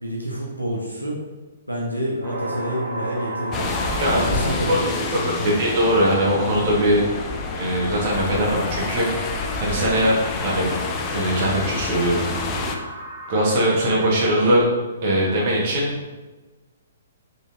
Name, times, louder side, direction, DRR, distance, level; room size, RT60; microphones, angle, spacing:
voice 1, 0.0-1.2 1.7-3.7 4.1-5.6, equal, 90° right, -3 dB, 0.7 m, -28 dB
sound 1, 2.2-14.1, right 1 dB, 20° right, 0.8 m, -36 dB
sound 2, 3.5-12.8, left 3 dB, 20° left, 0.4 m, -28 dB
voice 2, 5.2-7.0 7.5-10.2 10.4-10.8 11.1-12.6 13.3-14.7 15.0-15.9, right 1 dB, 40° right, -4 dB, 1.2 m, -21 dB
4.4 x 3.2 x 2.5 m, 1.2 s
figure-of-eight pair, 120°, 0 cm